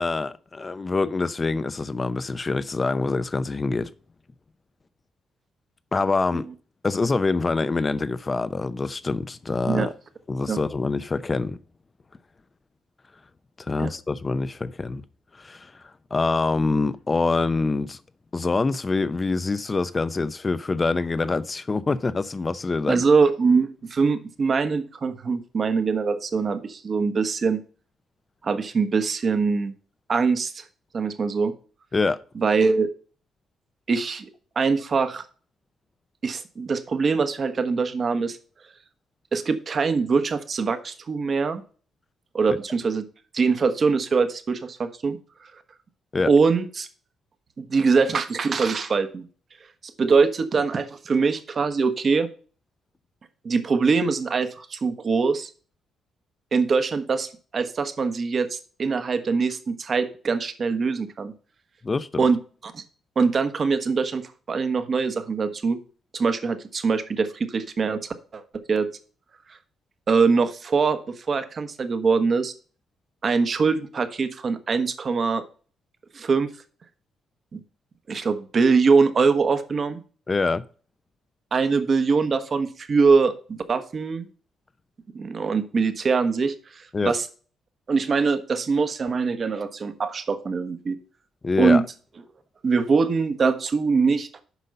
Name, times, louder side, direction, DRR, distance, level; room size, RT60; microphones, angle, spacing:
voice 1, 0.0-3.9 5.9-6.5 6.8-9.9 10.3-11.6 13.6-15.0 15.4-15.8 16.1-18.0 18.3-23.0 31.9-32.2 46.1-46.3 61.8-62.2 80.3-80.6 86.9-87.1 91.4-91.8, left 3 dB, 30° left, 0.6 m, -25 dB
voice 2, 22.9-27.6 28.4-29.7 30.1-30.6 30.9-31.5 32.4-32.9 33.9-34.3 34.5-35.2 36.2-38.4 39.3-41.6 42.3-43.0 43.3-45.5 46.3-46.9 47.6-49.2 50.0-52.3 53.4-55.5 56.5-61.3 62.2-62.8 63.2-64.2 64.5-65.8 66.1-68.4 68.7-68.9 70.1-72.5 73.2-75.4 76.1-76.5 77.5-77.6 78.1-80.0 81.5-84.3 85.1-87.2 87.9-91.0 91.6-91.8 92.6-94.4, right 4 dB, 45° right, 1.2 m, -23 dB
8.2 x 5.4 x 5.4 m
cardioid pair, 90°, 0 cm